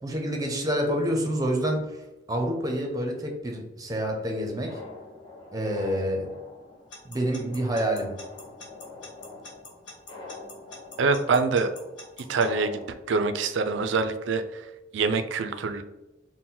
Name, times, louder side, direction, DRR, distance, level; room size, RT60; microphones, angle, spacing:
voice 1, 0.0-4.8 5.5-6.3 7.0-8.2, equal, 20° right, 2 dB, 0.6 m, -28 dB
sound 1, 3.9-12.9, left 3 dB, 25° left, 1.0 m, -44 dB
Alarm / Clock, 6.9-12.5, left 3 dB, 70° left, 1.1 m, -44 dB
voice 2, 11.0-11.7 12.3-12.8 13.1-14.6 14.9-15.8, right 4 dB, 70° right, 9 dB, 0.4 m, -25 dB
4.2 x 2.1 x 3.8 m, 1.0 s
head